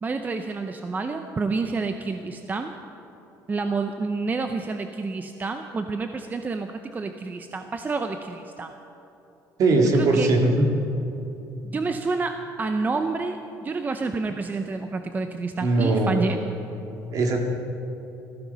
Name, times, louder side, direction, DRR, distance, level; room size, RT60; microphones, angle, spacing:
voice 1, 0.0-2.7 3.5-8.7 9.9-10.3 11.6-16.4, right 3 dB, 25° right, 7 dB, 0.7 m, -29 dB
voice 2, 9.6-10.7 15.6-16.2 17.1-17.4, right 2 dB, 55° right, 2 dB, 2.3 m, -20 dB
15.0 x 14.0 x 5.6 m, 3.0 s
cardioid pair, 105°, 7 cm